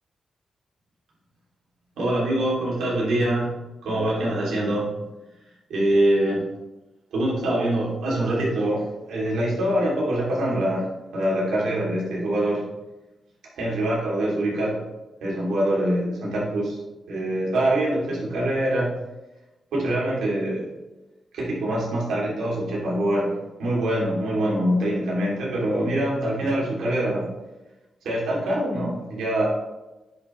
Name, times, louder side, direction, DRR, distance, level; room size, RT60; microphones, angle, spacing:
voice 1, 2.0-3.5 3.8-4.9 5.7-6.4 7.1-12.6 13.6-14.8 15.2-16.8 17.1-19.0 19.7-20.7 21.3-27.3 28.0-29.5, right 1 dB, 85° right, -5 dB, 2.8 m, -24 dB
10.5 x 5.6 x 3.2 m, 1.1 s
cardioid pair, 55°, 0 cm